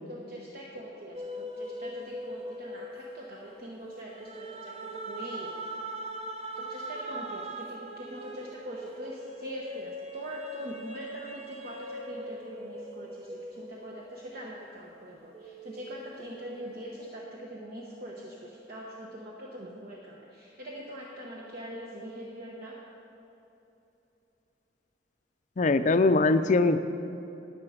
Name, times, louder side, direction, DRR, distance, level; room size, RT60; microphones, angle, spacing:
voice 1, 0.1-5.6 6.6-22.8, equal, 55° right, -3 dB, 1.1 m, -43 dB
sound 1, 1.1-14.9 15.3-17.0, right 1 dB, 35° right, 0.7 m, -41 dB
voice 2, 25.6-26.8, left 3 dB, 45° left, 10 dB, 0.5 m, -22 dB
10.5 x 9.8 x 5.1 m, 2.9 s
head